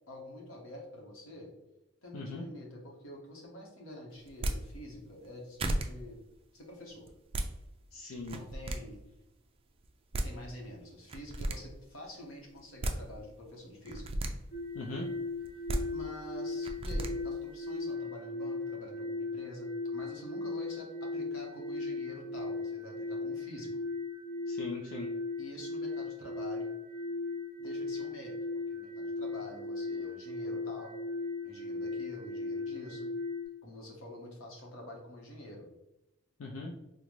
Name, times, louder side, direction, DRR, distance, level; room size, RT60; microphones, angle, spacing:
voice 1, 0.1-1.5 2.0-6.2 6.5-7.1 8.3-9.0 10.1-14.0 15.9-23.7 25.4-26.7 27.6-28.4 28.7-31.0 31.4-33.1 33.6-35.7, left 1 dB, 70° left, -1 dB, 1.0 m, -47 dB
voice 2, 2.1-2.4 7.9-8.4 14.7-15.1 24.5-25.1 36.4-36.7, left 3 dB, 90° left, -1 dB, 0.5 m, -40 dB
sound 1, 4.3-4.6 5.2-5.3 5.6-5.9 7.1-7.5 8.2-8.8 9.8-9.9 10.1-10.3 11.1-11.6 12.6-13.0 13.8-14.3 15.4-15.8 16.6-17.1, right 1 dB, 25° right, 0.3 m, -32 dB
sound 2, 14.5-33.4, left 3 dB, 15° left, 1.2 m, -37 dB
3.8 x 2.2 x 3.1 m, 0.94 s
head